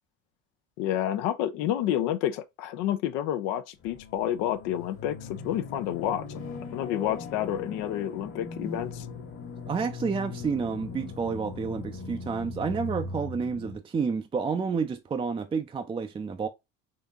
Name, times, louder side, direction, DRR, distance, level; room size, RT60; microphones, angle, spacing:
voice 1, 0.8-6.4 6.7-9.1, left 11 dB, 75° left, 0.6 m, -29 dB
sound 1, 3.8-13.8, left 3 dB, 45° left, 1.4 m, -39 dB
voice 2, 9.7-16.5, right 5 dB, 20° right, 0.4 m, -30 dB
3.9 x 2.7 x 3.5 m
supercardioid pair, 90°, 29 cm